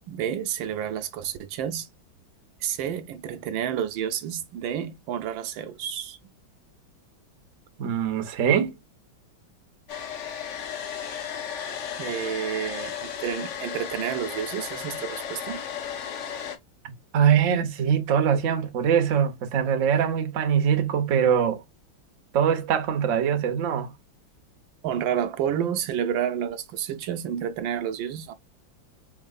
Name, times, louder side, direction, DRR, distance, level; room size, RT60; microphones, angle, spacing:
voice 1, 0.1-1.9 2.6-6.2 12.0-15.6 24.8-28.3, right 9 dB, 80° right, 1.3 m, -30 dB
voice 2, 7.8-8.7 17.1-21.6 22.3-23.9, right 8 dB, 55° right, 0.9 m, -22 dB
Domestic sounds home sounds, 9.9-16.6, left 8 dB, 85° left, 0.6 m, -34 dB
4.1 x 3.6 x 2.3 m
omnidirectional pair, 2.2 m